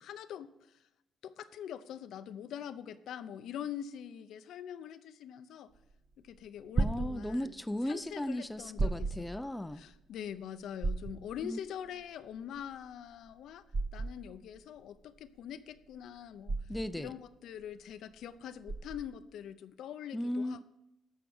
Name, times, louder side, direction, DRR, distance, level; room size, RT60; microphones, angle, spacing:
voice 1, 0.0-0.5 1.2-5.7 6.2-7.5 7.9-9.3 9.8-13.6 13.9-16.6 17.0-20.6, left 9 dB, 80° left, 11 dB, 0.6 m, -44 dB
sound 1, 5.7-19.3, right 3 dB, 40° right, 0.8 m, -37 dB
voice 2, 6.8-9.8 11.4-11.6 16.7-17.1 20.1-20.6, left 1 dB, 10° left, 12 dB, 0.5 m, -36 dB
12.5 x 4.7 x 7.2 m, 0.86 s
cardioid pair, 90°, 0 cm